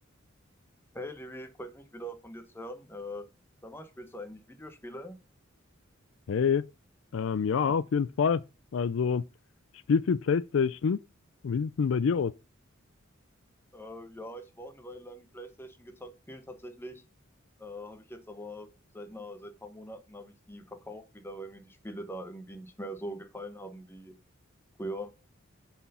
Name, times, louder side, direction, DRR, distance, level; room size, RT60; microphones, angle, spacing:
voice 1, 0.9-3.3 3.6-5.2 13.7-17.0 17.6-24.1 24.8-25.1, equal, 10° left, 1.0 m, -42 dB
voice 2, 6.3-6.6 7.1-8.4 8.7-9.2 9.9-11.0 11.4-12.3, left 6 dB, 70° left, 0.4 m, -26 dB
7.2 x 4.5 x 5.5 m
head